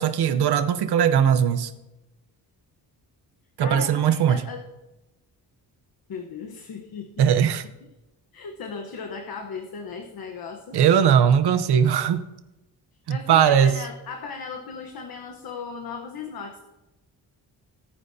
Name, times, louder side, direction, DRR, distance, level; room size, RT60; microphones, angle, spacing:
voice 1, 0.0-1.7 3.6-4.4 7.2-7.6 10.7-12.2 13.1-13.8, right 8 dB, 70° right, 11 dB, 0.9 m, -19 dB
voice 2, 3.6-4.7 6.1-7.5 8.3-10.8 13.1-16.6, left 5 dB, 60° left, 3 dB, 1.2 m, -37 dB
18.0 x 9.7 x 2.7 m, 1.0 s
wide cardioid pair, 135°, 41 cm